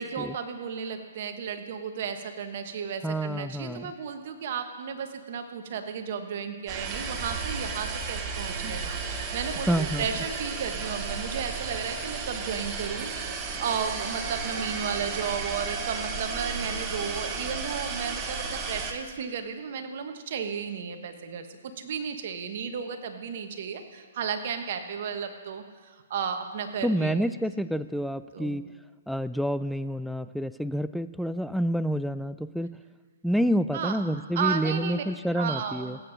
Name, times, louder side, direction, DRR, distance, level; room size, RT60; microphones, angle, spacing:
voice 1, 0.0-27.3 28.3-28.6 33.7-34.0 34.3-35.0 35.3-36.0, right 7 dB, 55° right, 7 dB, 1.3 m, -34 dB
voice 2, 3.0-3.9 9.7-10.1 26.8-28.7 29.1-32.8 33.2-36.0, equal, ahead, 14 dB, 0.3 m, -28 dB
sound 1, 6.7-18.9, right 4 dB, 25° right, 1.2 m, -33 dB
17.0 x 9.0 x 4.1 m, 1.5 s
hypercardioid pair, 135°, 0 cm